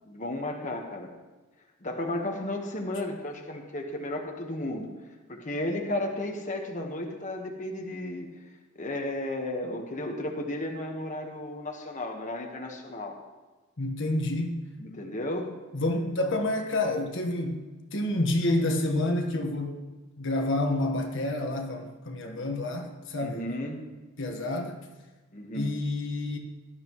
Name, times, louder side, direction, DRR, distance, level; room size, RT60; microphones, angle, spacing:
voice 1, 0.0-1.1 1.8-4.9 5.3-8.3 8.7-13.2 14.8-15.5 23.2-23.8 25.3-25.7, left 1 dB, 35° left, 1 dB, 1.3 m, -33 dB
voice 2, 13.8-14.5 15.7-17.6 17.9-19.8 20.2-23.5 24.2-24.8 25.5-26.4, left 1 dB, 55° left, 3 dB, 1.4 m, -28 dB
18.0 x 12.0 x 3.1 m, 1.2 s
head